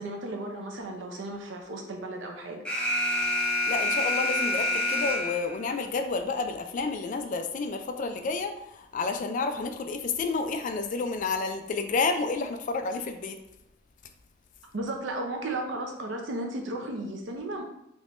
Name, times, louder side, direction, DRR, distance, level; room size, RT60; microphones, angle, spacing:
voice 1, 0.0-2.6 14.7-17.6, right 2 dB, 70° right, 2 dB, 0.6 m, -34 dB
Alarm, 2.7-5.6, left 2 dB, 5° left, 0.6 m, -27 dB
voice 2, 3.4-13.4, left 4 dB, 40° left, 6 dB, 0.3 m, -30 dB
3.5 x 3.0 x 2.5 m, 0.81 s
head